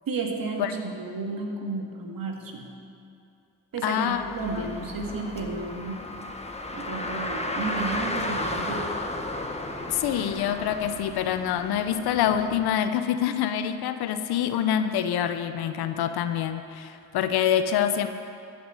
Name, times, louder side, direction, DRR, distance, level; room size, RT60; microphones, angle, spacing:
voice 1, 0.1-2.7 3.7-6.1 6.7-9.0, right 3 dB, 65° right, 1 dB, 2.0 m, -32 dB
voice 2, 3.8-4.2 4.5-4.7 9.9-18.1, left 9 dB, 85° left, 9 dB, 0.7 m, -26 dB
Car, 4.1-12.7, left 2 dB, 15° left, 1.4 m, -34 dB
13.5 x 6.0 x 9.0 m, 2.5 s
supercardioid pair, 40°, 37 cm